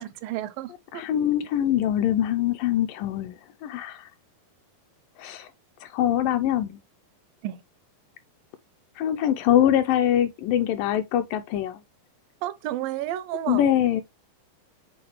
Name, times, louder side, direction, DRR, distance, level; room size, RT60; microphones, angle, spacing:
voice 1, 0.0-1.0 7.4-7.6 12.4-13.7, right 13 dB, 80° right, 2.2 m, -32 dB
voice 2, 0.9-4.1 5.2-5.5 5.8-6.8 9.0-11.8 13.5-14.0, left 11 dB, 80° left, 2.1 m, -23 dB
7.9 x 3.9 x 3.0 m
omnidirectional pair, 4.1 m